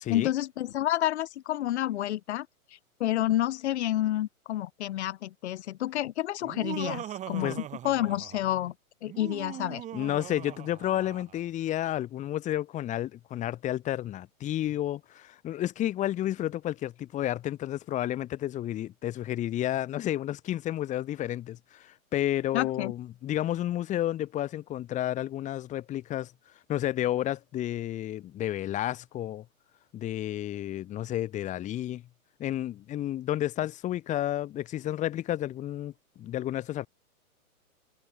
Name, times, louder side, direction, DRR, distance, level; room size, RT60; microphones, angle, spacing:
voice 1, 0.1-2.5 3.0-7.5 7.8-8.7 9.0-9.8 22.5-22.9, left 13 dB, 50° left, 2.4 m, -29 dB
Laughter, 6.4-8.6 9.0-11.4, right 12 dB, 15° right, 2.0 m, -40 dB
voice 2, 9.9-26.3 26.7-29.4 29.9-32.0 32.4-36.9, left 13 dB, 15° left, 2.1 m, -31 dB
hypercardioid pair, 150°, 43 cm